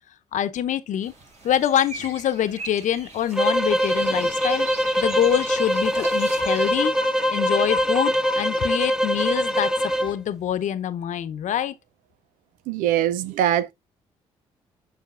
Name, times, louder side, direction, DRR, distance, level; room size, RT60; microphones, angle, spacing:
voice 1, 0.3-1.1 1.4-4.7 5.0-6.9 7.3-11.7, left 10 dB, 65° left, 0.9 m, -25 dB
sound 1, 1.0-6.8, right 3 dB, 55° right, 3.7 m, -40 dB
sound 2, 3.3-10.1, equal, 5° right, 0.5 m, -23 dB
sound 3, 3.6-10.1, left 6 dB, 35° left, 0.7 m, -37 dB
voice 2, 12.7-13.7, right 11 dB, 75° right, 0.6 m, -22 dB
7.6 x 6.5 x 2.5 m
hypercardioid pair, 45°, 14 cm